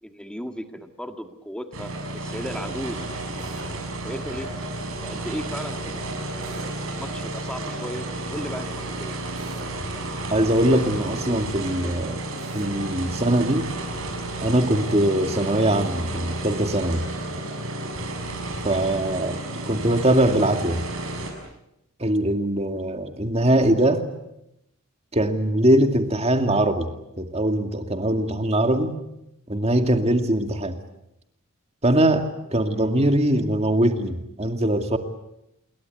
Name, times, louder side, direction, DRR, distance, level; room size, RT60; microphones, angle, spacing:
voice 1, 0.0-3.0 3.6-4.5 5.0-9.1 32.7-33.2, equal, 5° left, 6 dB, 1.8 m, -36 dB
sound 1, 1.7-21.3, right 2 dB, 65° right, 6.6 m, -32 dB
Drill, 3.4-3.8 6.4-6.8 9.4-9.8 12.4-12.8, right 3 dB, 50° right, 4.3 m, -43 dB
voice 2, 10.3-12.2 12.5-13.7 14.4-17.0 18.6-20.8 22.0-24.0 25.1-26.9 27.2-29.0 29.5-30.8 31.8-35.0, right 1 dB, 30° right, 6 dB, 2.2 m, -22 dB
28.0 x 22.5 x 8.2 m, 0.85 s
head